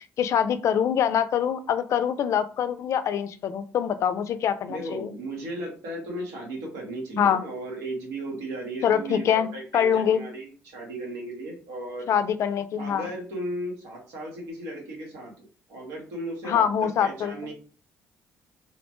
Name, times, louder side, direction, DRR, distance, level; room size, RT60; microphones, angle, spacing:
voice 1, 0.2-5.1 7.2-7.4 8.8-10.2 12.1-13.1 16.4-17.3, left 8 dB, 60° left, 11 dB, 0.3 m, -24 dB
voice 2, 4.7-12.1 12.8-17.5, right 1 dB, 85° right, -1 dB, 1.1 m, -36 dB
2.9 x 2.1 x 2.9 m, 0.39 s
supercardioid pair, 65°, 6 cm